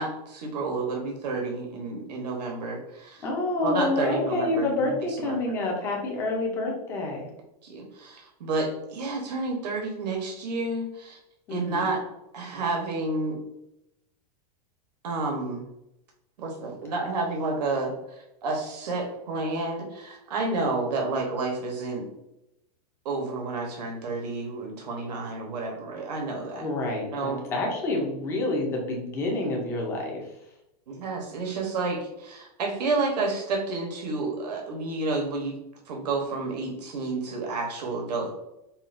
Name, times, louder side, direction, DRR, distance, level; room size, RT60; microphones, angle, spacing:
voice 1, 0.0-3.2 3.6-5.3 7.6-11.2 11.5-12.0 12.3-13.4 15.0-15.6 16.4-22.1 23.0-26.7 27.1-27.4 30.9-35.6 35.9-38.3, right 3 dB, 90° right, 1 dB, 1.0 m, -30 dB
voice 2, 3.2-7.3 11.5-11.9 26.6-30.3, left 2 dB, 10° left, -1 dB, 0.5 m, -28 dB
5.5 x 2.2 x 2.5 m, 0.86 s
supercardioid pair, 180°, 21 cm